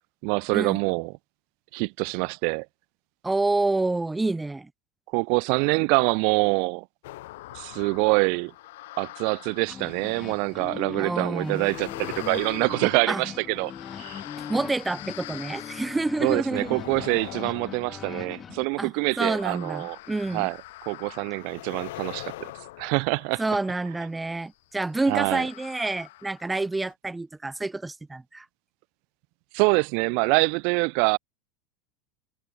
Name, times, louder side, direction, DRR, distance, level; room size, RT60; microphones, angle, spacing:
voice 1, 0.2-1.1 1.7-2.7 5.1-6.8 7.5-8.5 9.0-13.7 14.0-14.2 16.2-20.0 20.3-20.6 20.9-22.5 22.8-23.4 25.1-25.5 29.5-31.2, right 39 dB, 60° right, 0.9 m, -25 dB
voice 2, 3.2-4.7 11.0-11.7 13.1-13.2 14.5-16.8 18.8-18.9 19.2-20.5 23.4-28.5, right 2 dB, 10° right, 0.9 m, -28 dB
sound 1, 7.0-10.7 11.4-24.2 25.0-26.6 26.9-27.0, left 18 dB, 75° left, 2.3 m, -43 dB
sound 2, 9.7-18.7, left 7 dB, 25° left, 3.3 m, -40 dB
supercardioid pair, 135°, 0 cm